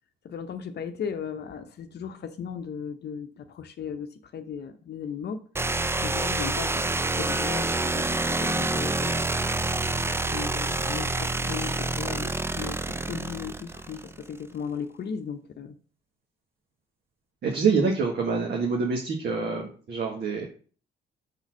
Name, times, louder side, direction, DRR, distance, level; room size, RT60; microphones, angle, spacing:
voice 1, 0.2-5.4 6.0-9.2 10.3-15.8, left 7 dB, 55° left, 0.7 m, -36 dB
sound 1, 5.5-14.3, right 2 dB, 10° right, 0.5 m, -27 dB
voice 2, 17.4-20.4, right 5 dB, 55° right, 1.6 m, -26 dB
5.7 x 4.1 x 6.2 m
cardioid pair, 90°, 20 cm